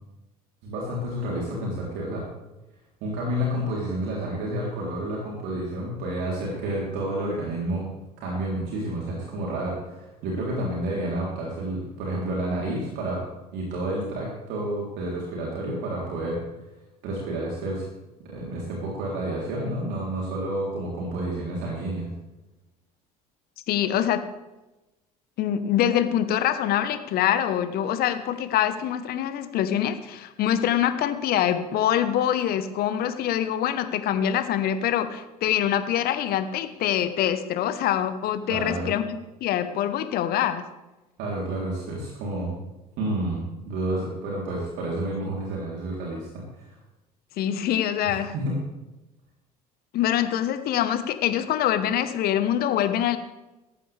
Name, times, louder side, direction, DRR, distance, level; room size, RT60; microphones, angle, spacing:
voice 1, 0.6-2.3 3.0-7.9 8.2-13.3 13.5-16.4 17.0-17.9 18.2-22.1 38.5-38.9 41.2-42.6 43.0-46.7 48.1-48.6, right 1 dB, 60° right, -3 dB, 3.8 m, -30 dB
voice 2, 23.7-24.2 25.4-40.6 47.4-48.3 49.9-53.2, left 10 dB, 50° left, 11 dB, 1.3 m, -24 dB
17.5 x 14.0 x 3.5 m, 1.0 s
figure-of-eight pair, 60°, 20 cm